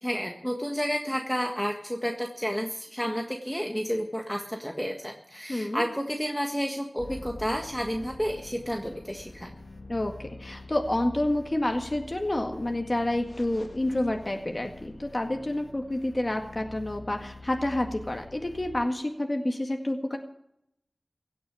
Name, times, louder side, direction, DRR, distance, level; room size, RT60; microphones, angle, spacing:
voice 1, 0.0-9.5, equal, 5° left, 3 dB, 1.6 m, -31 dB
voice 2, 5.5-5.8 9.9-20.2, left 1 dB, 40° left, 4 dB, 1.9 m, -29 dB
sound 1, 7.0-18.9, left 2 dB, 60° left, 1.8 m, -45 dB
17.0 x 6.6 x 10.0 m, 0.75 s
wide cardioid pair, 45°, 0 cm